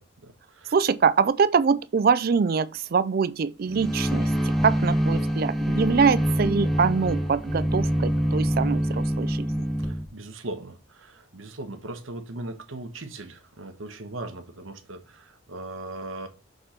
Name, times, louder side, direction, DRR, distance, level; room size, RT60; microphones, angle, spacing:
voice 1, 0.0-0.8 9.8-16.3, right 2 dB, 85° right, 1.1 m, -39 dB
voice 2, 0.7-9.5, right 5 dB, 50° right, 0.4 m, -24 dB
sound 1, 3.7-10.1, equal, ahead, 0.6 m, -25 dB
6.7 x 3.9 x 4.2 m
head